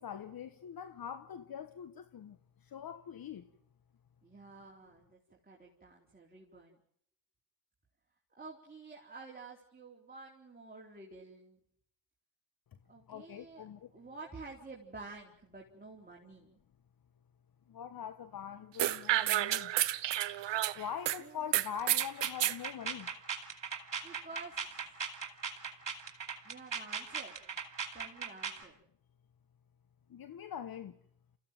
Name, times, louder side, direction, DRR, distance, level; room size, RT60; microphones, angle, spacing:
voice 1, 0.0-3.5 13.1-13.9 17.7-19.7 20.7-23.1 30.1-31.0, left 8 dB, 45° left, 1.3 m, -43 dB
voice 2, 4.2-6.8 8.4-11.6 12.9-13.7 13.9-16.5 21.2-21.4 24.0-24.8 26.4-27.4 27.9-28.8, right 3 dB, 20° right, 4.4 m, -50 dB
sound 1, 18.8-21.2 21.5-22.6, right 14 dB, 60° right, 1.1 m, -30 dB
sound 2, 21.8-28.6, right 6 dB, 40° right, 4.4 m, -39 dB
28.5 x 15.5 x 7.7 m
supercardioid pair, 65°, 49 cm